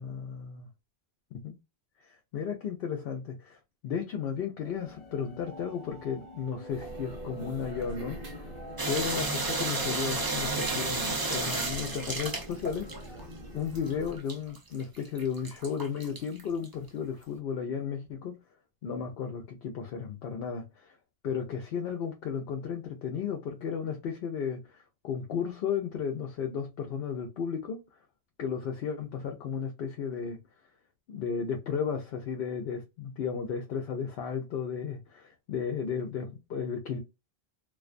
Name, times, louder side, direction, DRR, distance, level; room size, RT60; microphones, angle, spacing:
voice 1, 0.0-0.7 1.4-1.6 2.0-8.5 8.9-13.2 13.5-18.4 18.8-21.0 21.2-27.8 28.4-30.4 31.1-37.0, left 6 dB, 70° left, 0.8 m, -34 dB
sound 1, 4.6-12.1, left 1 dB, 35° left, 0.7 m, -46 dB
sound 2, 6.7-14.2, equal, 60° right, 1.0 m, -44 dB
sound 3, 8.8-13.2 13.7-16.7, right 3 dB, 30° right, 0.4 m, -32 dB
2.4 x 2.3 x 2.4 m
omnidirectional pair, 1.1 m